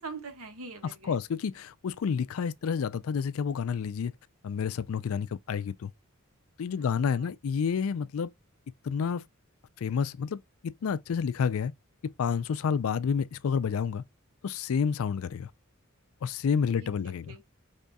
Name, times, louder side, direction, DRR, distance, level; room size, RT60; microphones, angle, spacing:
voice 1, 0.0-1.2 6.8-7.3 16.8-17.4, right 4 dB, 85° right, 1.4 m, -44 dB
voice 2, 1.1-4.1 4.4-5.9 6.6-8.3 8.8-9.2 9.8-11.7 12.2-14.0 14.4-15.5 16.2-17.4, left 6 dB, 75° left, 0.4 m, -29 dB
5.3 x 3.6 x 2.2 m
head